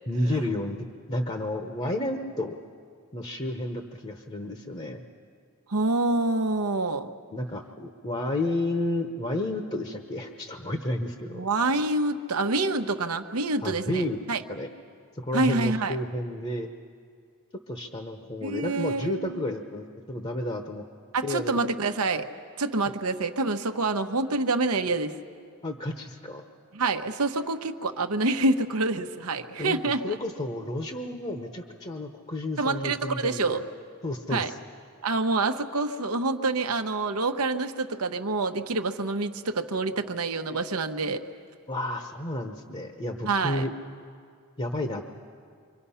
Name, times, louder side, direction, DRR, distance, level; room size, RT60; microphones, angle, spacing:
voice 1, 0.1-2.6 3.1-5.0 7.3-11.5 13.6-14.2 14.5-14.7 15.1-16.7 17.7-20.8 21.2-21.6 25.6-26.4 29.6-33.7 34.0-34.6 41.7-43.7 44.6-45.0, left 1 dB, 25° left, 4 dB, 0.9 m, -31 dB
voice 2, 5.7-7.1 11.3-14.4 15.3-16.0 18.4-19.4 21.1-22.3 22.6-25.1 26.7-30.2 32.6-33.6 34.3-34.5 35.0-41.2 43.2-43.7, right 3 dB, 80° right, 6 dB, 1.0 m, -27 dB
28.5 x 25.0 x 5.7 m, 2.2 s
head